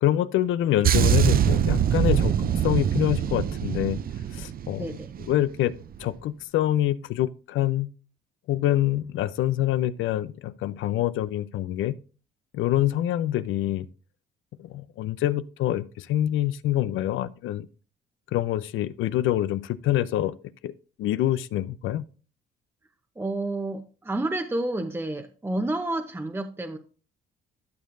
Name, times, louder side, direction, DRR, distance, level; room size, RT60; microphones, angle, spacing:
voice 1, 0.0-2.3 2.6-4.0 4.3-4.9 5.3-5.7 6.0-7.9 8.5-11.9 12.5-13.9 14.6-17.7 18.3-20.3 20.6-20.7 21.0-22.0, left 13 dB, 85° left, 0.5 m, -25 dB
sound 1, 0.8-5.4 5.7-6.0, right 9 dB, 50° right, 0.5 m, -23 dB
voice 2, 4.8-5.1 23.2-26.8, right 2 dB, 10° right, 0.8 m, -30 dB
12.0 x 6.6 x 2.6 m
cardioid pair, 90°, 20 cm